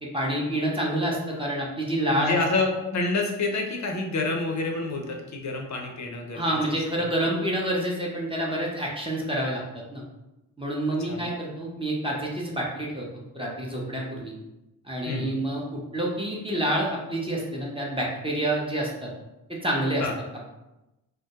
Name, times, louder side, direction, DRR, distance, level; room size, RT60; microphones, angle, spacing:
voice 1, 0.0-2.3 6.3-10.0 10.6-13.1 13.3-14.3 14.8-19.1 19.5-20.0, right 1 dB, 10° right, -3 dB, 0.7 m, -28 dB
voice 2, 2.2-6.6 6.9-7.1 11.1-11.3 15.0-15.3 20.0-20.1, left 3 dB, 40° left, 2 dB, 0.6 m, -28 dB
2.1 x 2.1 x 2.8 m, 0.96 s
supercardioid pair, 45°, 45 cm